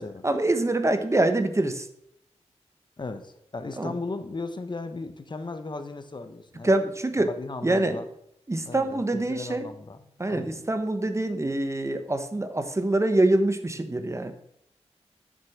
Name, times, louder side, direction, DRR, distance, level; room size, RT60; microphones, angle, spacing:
voice 1, 0.0-1.9 3.8-3.9 6.6-7.3 7.6-8.0 8.5-9.7 10.2-14.3, right 2 dB, 25° right, 8 dB, 1.2 m, -25 dB
voice 2, 3.0-6.7 7.2-8.1 8.6-10.0 10.3-10.6, left 3 dB, 40° left, 9 dB, 1.1 m, -36 dB
9.5 x 6.5 x 7.2 m, 0.76 s
cardioid pair, 65°, 11 cm